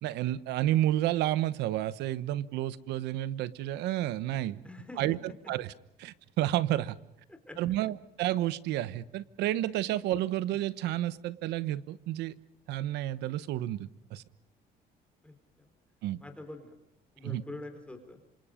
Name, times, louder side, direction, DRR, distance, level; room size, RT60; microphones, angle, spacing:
voice 1, 0.0-4.6 5.0-5.7 6.0-7.0 7.6-12.3 12.7-14.2 16.0-16.2 17.2-17.4, right 14 dB, 85° right, 17 dB, 1.1 m, -31 dB
voice 2, 4.6-5.2 7.3-7.6 15.2-15.7 16.2-16.7 17.1-18.2, left 2 dB, 5° left, 6 dB, 4.1 m, -45 dB
27.5 x 26.5 x 5.2 m, 0.78 s
cardioid pair, 110°, 17 cm